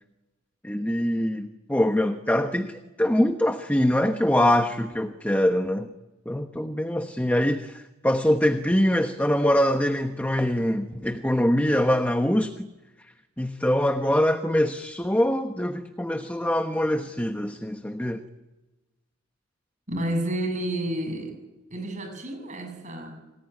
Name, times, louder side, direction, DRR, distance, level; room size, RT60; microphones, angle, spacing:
voice 1, 0.6-5.9 6.3-12.7 13.4-18.2, left 1 dB, 10° left, 7 dB, 1.1 m, -24 dB
voice 2, 19.9-21.4 21.7-23.1, right 1 dB, 40° right, 6 dB, 7.5 m, -30 dB
28.5 x 19.0 x 10.0 m, 1.1 s
head